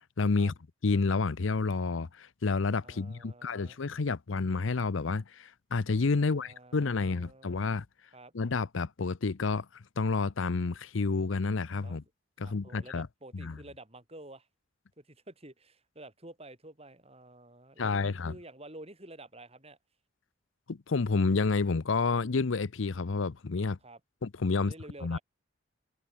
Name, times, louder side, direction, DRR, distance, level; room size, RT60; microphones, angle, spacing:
voice 1, 0.2-0.5 0.8-7.8 8.3-12.0 12.4-13.1 13.3-13.6 17.8-18.4 20.7-23.8 24.2-24.7 25.0-25.2, left 4 dB, 75° left, 0.7 m, -29 dB
voice 2, 2.8-3.8 6.2-7.6 8.1-8.3 11.8-12.0 12.4-14.5 15.0-19.8 23.8-24.0 24.5-25.2, right 1 dB, 30° right, 6.0 m, -50 dB
head